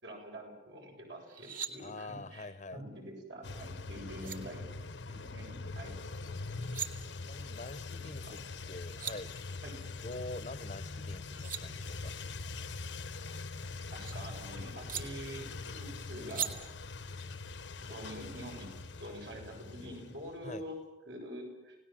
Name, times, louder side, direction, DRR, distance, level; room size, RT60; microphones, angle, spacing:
voice 1, 0.0-2.5 2.7-4.7 5.1-6.0 7.9-8.4 9.6-9.8 13.9-16.5 17.8-20.8 21.1-21.8, equal, 75° right, 1 dB, 7.7 m, -46 dB
sound 1, 1.2-1.7 3.8-3.9 4.2-4.4 6.4-6.9 8.6-8.7 8.8-9.2 11.1-11.6 13.1-14.1 14.9-15.0 16.3-16.5, right 8 dB, 45° right, 2.3 m, -39 dB
voice 2, 1.8-2.8 7.2-8.4 8.7-9.7 10.0-12.2 20.4-20.6, left 2 dB, 40° left, 14 dB, 0.8 m, -45 dB
sound 2, 3.4-20.5, left 3 dB, 85° left, 1.1 m, -43 dB
30.0 x 18.5 x 7.6 m, 0.95 s
head